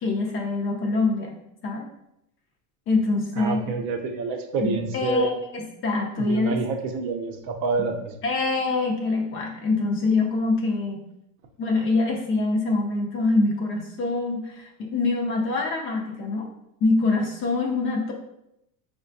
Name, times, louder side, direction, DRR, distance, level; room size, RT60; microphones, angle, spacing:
voice 1, 0.0-1.3 1.6-1.9 2.9-3.7 4.6-6.6 8.2-11.0 11.6-16.5 16.8-18.1, left 3 dB, 30° left, 0 dB, 0.4 m, -24 dB
voice 2, 3.4-5.3 6.2-7.9, right 4 dB, 55° right, 5 dB, 0.6 m, -27 dB
4.7 x 2.2 x 2.6 m, 0.81 s
supercardioid pair, 125°, 44 cm